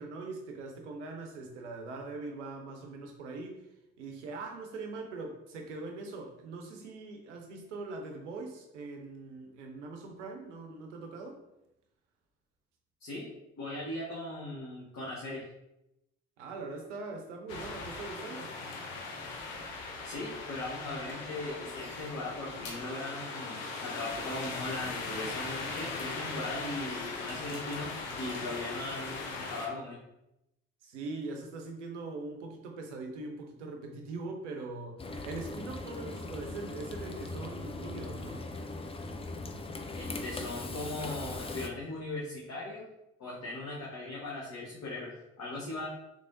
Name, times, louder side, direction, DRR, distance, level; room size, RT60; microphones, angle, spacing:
voice 1, 0.0-3.7 4.0-11.4 16.4-18.5 30.8-38.4, right 3 dB, 90° right, 3 dB, 0.5 m, -42 dB
voice 2, 13.0-15.5 20.0-30.0 39.9-42.9 43.2-45.9, left 2 dB, 50° left, -5 dB, 0.9 m, -39 dB
sound 1, 17.5-29.7, left 3 dB, 75° left, 0.6 m, -39 dB
Frying (food), 35.0-41.7, left 2 dB, 15° left, 0.4 m, -40 dB
3.3 x 3.3 x 2.5 m, 0.87 s
hypercardioid pair, 40°, 34 cm